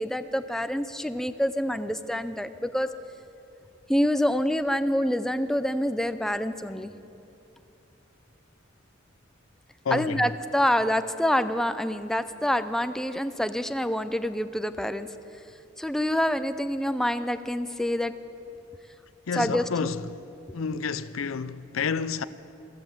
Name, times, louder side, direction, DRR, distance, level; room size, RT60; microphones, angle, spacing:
voice 1, 0.0-2.9 3.9-6.9 9.9-15.1 15.8-18.1 19.3-19.9, equal, ahead, 0.4 m, -26 dB
voice 2, 9.8-10.3 19.3-20.2 20.5-22.2, left 5 dB, 90° left, 0.5 m, -29 dB
14.5 x 13.5 x 7.1 m
head